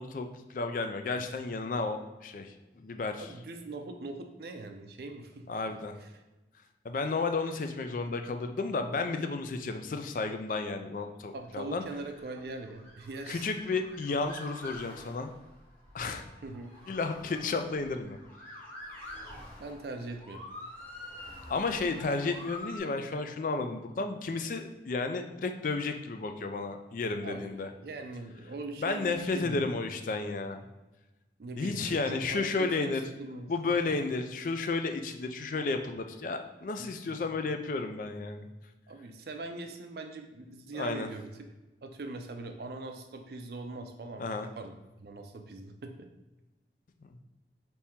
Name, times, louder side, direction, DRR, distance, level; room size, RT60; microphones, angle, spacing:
voice 1, 0.0-3.3 5.5-6.0 6.8-11.8 13.3-15.3 15.9-16.2 16.9-18.2 21.5-27.7 28.8-30.6 31.6-33.0 33.5-38.5 40.7-41.1 44.2-44.5 47.0-47.1, left 3 dB, 50° left, 7 dB, 0.3 m, -32 dB
voice 2, 3.2-5.5 6.0-6.2 11.3-13.5 16.4-16.8 19.6-20.4 27.2-29.9 31.4-33.5 34.0-34.1 36.8-37.2 38.9-41.5 41.8-46.1, right 2 dB, 60° right, 5 dB, 0.4 m, -42 dB
Motor vehicle (road) / Siren, 11.7-22.8, left 1 dB, 10° left, 0.9 m, -47 dB
3.5 x 2.8 x 4.3 m, 1.1 s
head